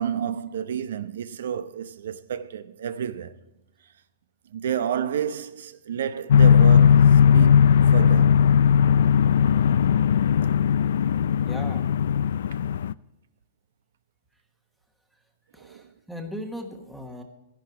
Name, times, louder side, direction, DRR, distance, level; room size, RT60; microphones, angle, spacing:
voice 1, 0.0-3.3 4.5-7.0 7.3-7.6 7.9-8.4 15.7-15.8, right 8 dB, 75° right, 0.7 m, -30 dB
sound 1, 6.3-12.9, left 8 dB, 70° left, 0.4 m, -18 dB
voice 2, 11.5-11.8 15.5-17.2, equal, ahead, 1.1 m, -37 dB
12.0 x 11.0 x 4.7 m
hypercardioid pair, 165°, 0 cm